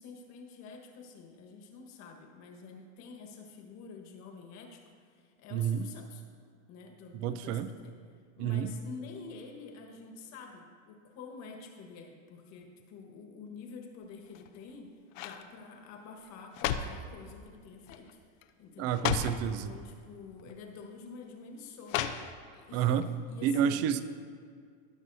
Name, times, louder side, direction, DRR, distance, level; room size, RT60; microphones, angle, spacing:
voice 1, 0.0-6.2 6.7-7.9 8.4-14.9 15.2-19.1 19.5-22.1 22.5-23.9, left 4 dB, 45° left, 3 dB, 1.5 m, -48 dB
voice 2, 5.5-5.9 7.1-7.7 8.4-8.7 18.8-19.7 22.7-23.0 23.4-24.0, right 9 dB, 40° right, 12 dB, 0.5 m, -29 dB
sound 1, 14.3-14.7 15.1-15.5 16.2-17.1 17.9-18.1 18.4-18.5 18.9-19.4 20.4-20.5 21.9-22.6 23.0-23.1, left 9 dB, 80° left, 0.7 m, -34 dB
17.0 x 6.1 x 2.7 m, 2.1 s
supercardioid pair, 130°, 39 cm